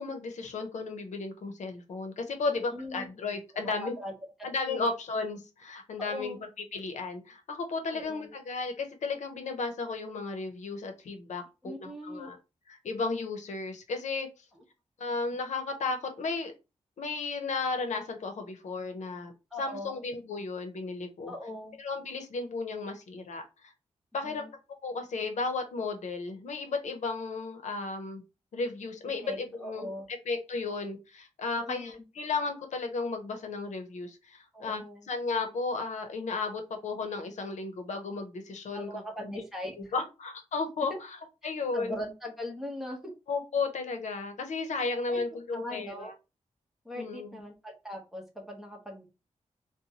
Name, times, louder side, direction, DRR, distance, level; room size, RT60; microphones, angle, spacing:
voice 1, 0.0-4.0 4.4-6.4 6.7-12.4 12.7-14.3 15.0-16.5 17.0-19.3 19.6-21.3 21.8-23.7 24.1-24.4 24.8-28.2 28.5-39.3 39.9-40.9 41.4-42.0 43.3-46.1 47.0-47.4, left 3 dB, 85° left, 6 dB, 0.7 m, -34 dB
voice 2, 2.5-3.1 3.5-4.1 4.4-4.9 6.0-6.4 7.9-8.3 11.6-12.3 19.5-20.0 21.3-21.8 24.2-24.5 29.2-30.1 31.5-32.0 34.5-35.1 38.7-39.9 40.9-41.0 41.4-43.1 45.1-45.2 45.5-46.1 46.8-49.0, left 1 dB, 5° right, 0 dB, 1.0 m, -40 dB
4.0 x 2.2 x 2.9 m, 0.27 s
wide cardioid pair, 155°, 12 cm